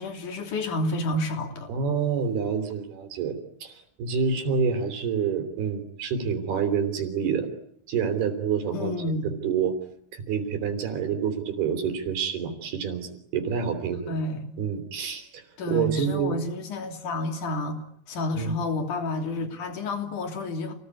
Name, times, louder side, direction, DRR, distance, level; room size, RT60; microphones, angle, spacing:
voice 1, 0.0-1.7 8.7-9.3 14.1-14.6 15.6-20.7, left 2 dB, 55° left, 4.5 m, -30 dB
voice 2, 1.7-3.4 3.6-7.5 7.9-9.7 10.1-14.1 14.6-16.4 18.3-18.6, right 6 dB, 80° right, 5.3 m, -28 dB
29.0 x 19.5 x 9.9 m
omnidirectional pair, 4.5 m